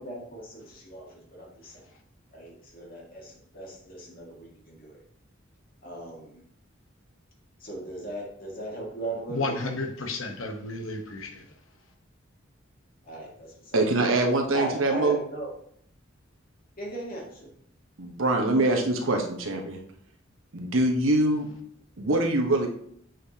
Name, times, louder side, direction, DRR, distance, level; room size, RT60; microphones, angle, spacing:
voice 1, 0.0-1.9 2.3-5.0 5.8-6.4 7.6-9.7 13.0-13.8 14.5-15.5 16.8-17.5, right 1 dB, 50° left, -3 dB, 2.1 m, -38 dB
voice 2, 9.3-11.5, left 2 dB, 80° left, 5 dB, 1.1 m, -32 dB
voice 3, 13.7-15.2 18.0-19.8 20.5-21.5 22.0-22.7, right 2 dB, 90° right, 3 dB, 1.1 m, -24 dB
7.6 x 5.1 x 2.9 m, 0.66 s
head